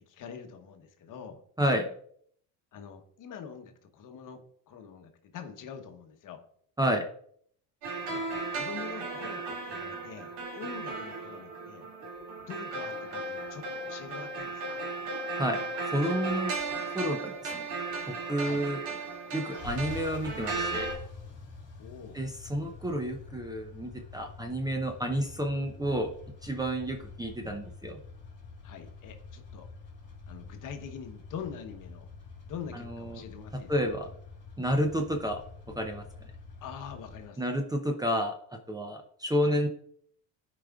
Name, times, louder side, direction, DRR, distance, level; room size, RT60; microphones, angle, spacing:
voice 1, 0.0-1.4 2.7-6.4 8.1-8.3 8.5-11.8 12.4-14.8 18.4-18.6 21.8-22.2 28.6-29.7 30.3-32.1 32.5-33.7 36.6-37.4 39.4-39.6, left 7 dB, 50° left, 6 dB, 1.1 m, -44 dB
voice 2, 1.6-1.9 6.8-7.0 15.4-16.5 16.9-17.7 18.1-18.8 19.3-21.0 22.1-26.1 26.4-28.0 32.7-33.2 33.7-34.1 34.6-35.4 35.7-36.0 37.4-38.4 38.7-39.7, equal, 10° right, 3 dB, 0.6 m, -30 dB
sound 1, 7.8-20.9, right 3 dB, 80° right, 2.5 m, -36 dB
sound 2, 17.4-37.3, left 4 dB, 25° left, 2.3 m, -47 dB
13.5 x 5.1 x 2.4 m, 0.63 s
supercardioid pair, 110°, 41 cm